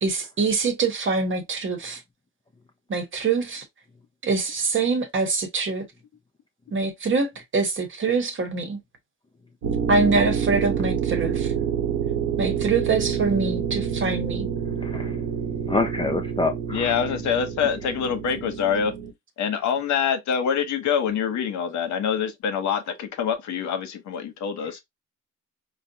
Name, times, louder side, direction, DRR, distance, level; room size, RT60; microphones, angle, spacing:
voice 1, 0.0-2.0 2.9-3.6 4.2-5.8 6.7-8.8 9.9-11.5 12.4-14.5, right 4 dB, 40° right, 1.0 m, -24 dB
sound 1, 9.6-19.1, right 7 dB, 75° right, 0.9 m, -27 dB
voice 2, 14.8-15.1 15.7-17.0, left 3 dB, 15° left, 0.5 m, -26 dB
voice 3, 16.7-18.9 19.4-24.8, left 7 dB, 70° left, 0.8 m, -25 dB
3.9 x 2.0 x 2.7 m
cardioid pair, 90°, 30 cm